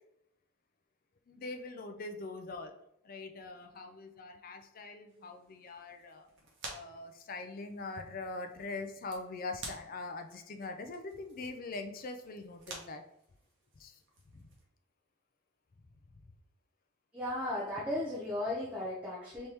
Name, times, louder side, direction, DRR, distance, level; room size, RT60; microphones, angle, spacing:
voice 1, 1.3-2.7 3.0-6.3 6.7-13.0 13.8-14.0 14.3-14.5, left 3 dB, 40° left, 6 dB, 0.4 m, -43 dB
sound 1, 5.1-14.7, right 2 dB, 55° right, 1.1 m, -52 dB
voice 2, 17.1-19.5, left 1 dB, 5° right, -6 dB, 0.7 m, -35 dB
4.1 x 3.0 x 3.4 m, 0.80 s
head